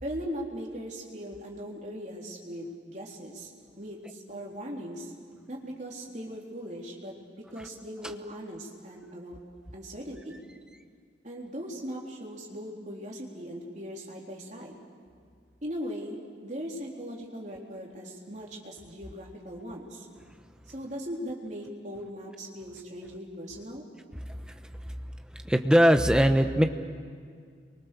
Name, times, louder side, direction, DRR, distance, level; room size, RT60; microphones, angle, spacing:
voice 1, 0.0-3.5 3.8-5.1 5.5-7.1 7.5-9.4 9.7-10.4 11.2-14.8 15.6-20.1 20.7-23.8, equal, 40° right, -2 dB, 3.8 m, -39 dB
voice 2, 24.3-24.9 25.3-26.6, equal, 5° right, 6 dB, 1.0 m, -22 dB
29.5 x 24.0 x 6.9 m, 2.1 s
head